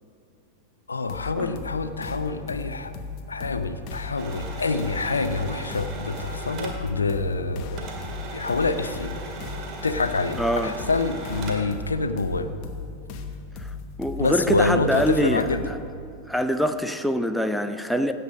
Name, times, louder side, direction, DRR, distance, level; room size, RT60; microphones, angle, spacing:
voice 1, 0.9-2.9 3.3-7.9 8.3-9.1 9.8-12.5 14.2-15.7, left 3 dB, 75° left, 11 dB, 0.5 m, -26 dB
sound 1, 1.1-15.9, left 4 dB, 40° left, 1.1 m, -37 dB
sound 2, 4.2-7.5 7.8-11.8, right 3 dB, 35° right, 2.0 m, -38 dB
voice 2, 10.4-10.7 14.0-15.5 16.3-18.1, equal, ahead, 8 dB, 0.5 m, -24 dB
16.5 x 6.8 x 5.0 m, 2.6 s
figure-of-eight pair, 90°, 0 cm